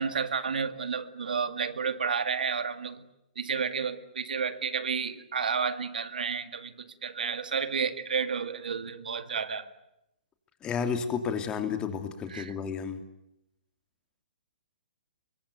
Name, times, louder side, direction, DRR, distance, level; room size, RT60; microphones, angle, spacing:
voice 1, 0.0-3.0 3.4-9.7 12.3-12.5, right 6 dB, 75° right, 10 dB, 2.1 m, -31 dB
voice 2, 10.6-13.0, left 6 dB, 20° left, 7 dB, 2.8 m, -31 dB
25.0 x 23.0 x 9.4 m, 0.85 s
hypercardioid pair, 135°, 5 cm